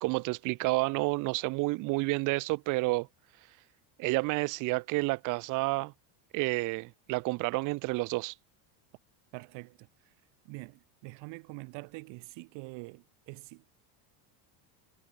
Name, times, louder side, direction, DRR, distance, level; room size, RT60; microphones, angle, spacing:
voice 1, 0.0-3.1 4.0-5.9 6.3-8.3, right 24 dB, 45° right, 0.5 m, -30 dB
voice 2, 9.3-10.1 10.4-13.7, right 28 dB, 65° right, 3.1 m, -45 dB
cardioid pair, 140°, 48 cm